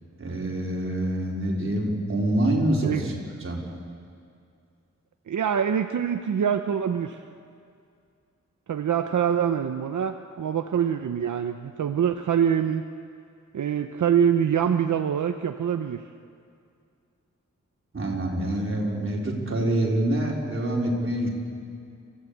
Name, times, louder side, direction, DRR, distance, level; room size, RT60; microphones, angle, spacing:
voice 1, 0.2-3.1 3.4-3.6 17.9-21.3, right 1 dB, 45° right, -2 dB, 4.1 m, -26 dB
voice 2, 5.3-7.2 8.7-12.8 13.5-16.0, right 8 dB, 80° right, 6 dB, 0.8 m, -24 dB
29.5 x 15.5 x 8.2 m, 2.4 s
wide cardioid pair, 145°, 30 cm